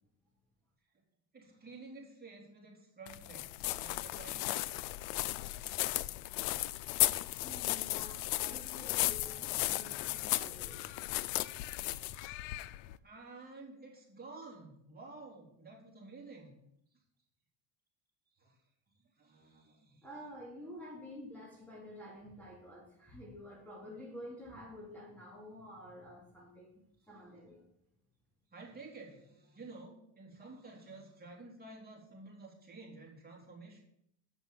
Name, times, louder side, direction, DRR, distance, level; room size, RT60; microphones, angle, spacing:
voice 1, 1.3-4.8 8.8-10.2 10.5-11.4 12.5-12.6 13.0-16.6 16.9-17.0 18.3-18.6 18.9-20.1 28.5-33.8, right 3 dB, 20° right, -2 dB, 3.4 m, -52 dB
sound 1, 3.1-13.0, left 18 dB, 90° left, 0.5 m, -35 dB
voice 2, 7.4-10.9 20.0-27.6, equal, 5° left, -4 dB, 2.5 m, -50 dB
8.5 x 6.0 x 7.4 m, 0.74 s
cardioid pair, 110°, 43 cm